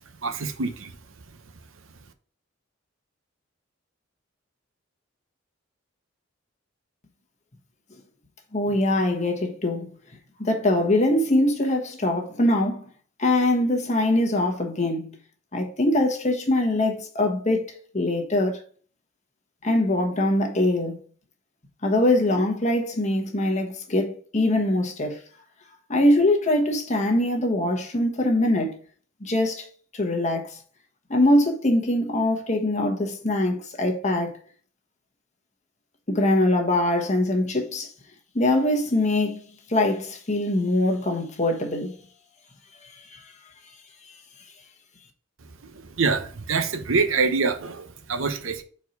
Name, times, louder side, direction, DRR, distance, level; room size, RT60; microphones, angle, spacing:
voice 1, 0.2-0.9 45.6-48.6, right 4 dB, 90° right, 0.8 m, -25 dB
voice 2, 8.5-9.9 10.4-12.8 13.2-15.1 15.5-18.6 19.6-21.0 21.8-25.2 25.9-28.8 29.2-29.7 29.9-30.6 31.1-34.4 36.1-37.9 38.3-39.4 39.7-41.9 43.1-43.2, left 1 dB, 35° left, 1.3 m, -23 dB
4.6 x 4.4 x 5.2 m
head